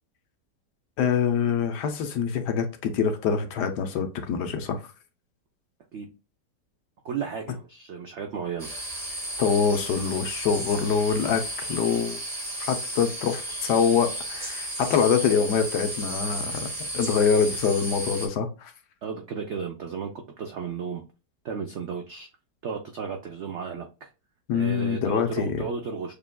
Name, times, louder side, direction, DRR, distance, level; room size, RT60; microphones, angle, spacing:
voice 1, 1.0-4.8 9.4-12.2 12.7-16.5 16.9-18.7 24.5-25.6, left 6 dB, 70° left, 1.3 m, -25 dB
voice 2, 7.0-8.7 19.0-20.1 20.4-21.0 21.4-22.3 22.6-24.1 24.5-26.1, right 6 dB, 75° right, 0.6 m, -34 dB
sound 1, 8.6-18.3, right 1 dB, 25° right, 1.1 m, -33 dB
6.6 x 2.5 x 2.2 m
omnidirectional pair, 1.9 m